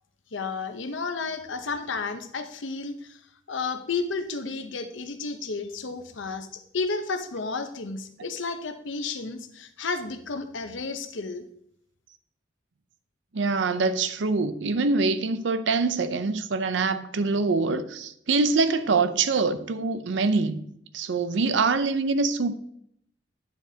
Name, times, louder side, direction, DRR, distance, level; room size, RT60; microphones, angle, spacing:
voice 1, 0.3-3.0 3.5-11.4, left 4 dB, 80° left, 0.8 m, -32 dB
voice 2, 13.3-20.6 20.9-22.5, right 4 dB, 70° right, 0.6 m, -24 dB
9.1 x 7.3 x 2.8 m
head